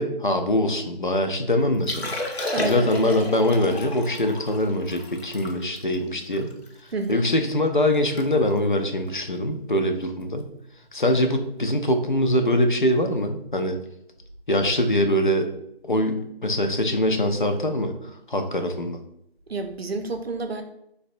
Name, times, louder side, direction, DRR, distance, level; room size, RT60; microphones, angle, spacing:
voice 1, 0.0-2.1 2.6-6.5 7.1-10.5 10.9-13.8 14.5-15.5 15.8-19.0, left 1 dB, 50° left, 7 dB, 0.4 m, -23 dB
Liquid, 1.7-7.1 7.6-7.7 7.9-8.3 8.5-8.8 9.4-9.6 11.1-11.2, left 2 dB, 85° left, 0.8 m, -33 dB
voice 2, 2.5-2.9 6.9-7.3 19.5-20.6, right 3 dB, 75° right, 6 dB, 0.6 m, -29 dB
3.9 x 2.1 x 2.6 m, 0.76 s
figure-of-eight pair, 170°, 31 cm